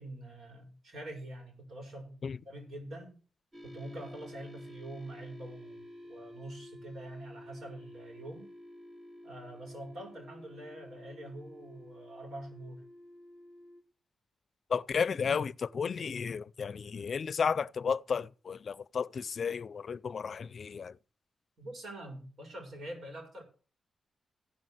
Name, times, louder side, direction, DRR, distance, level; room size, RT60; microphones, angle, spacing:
voice 1, 0.0-2.2 2.4-3.2 3.6-8.5 9.2-12.8 21.6-23.4, right 1 dB, 75° right, 5.9 m, -45 dB
sound 1, 3.5-13.8, left 1 dB, 35° right, 2.0 m, -51 dB
voice 2, 14.7-20.9, left 6 dB, 60° left, 0.5 m, -33 dB
16.0 x 5.4 x 7.8 m
cardioid pair, 90°, 0 cm